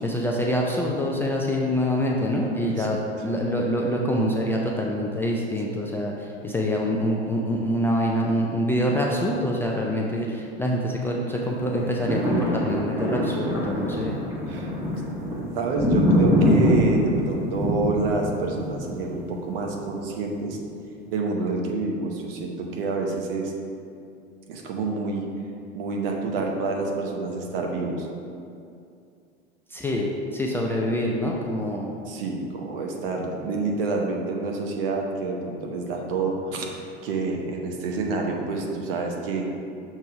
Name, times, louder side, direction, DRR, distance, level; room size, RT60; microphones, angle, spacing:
voice 1, 0.0-14.1 29.7-31.9, equal, 5° left, -3 dB, 0.3 m, -25 dB
sound 1, 11.6-19.9 20.4-20.5, left 1 dB, 10° right, 1.2 m, -24 dB
voice 2, 15.5-20.6 21.1-23.5 24.5-25.3 25.7-28.1 32.1-39.5, right 3 dB, 60° right, 1 dB, 1.0 m, -28 dB
6.6 x 3.3 x 4.7 m, 2.5 s
figure-of-eight pair, 80°, 32 cm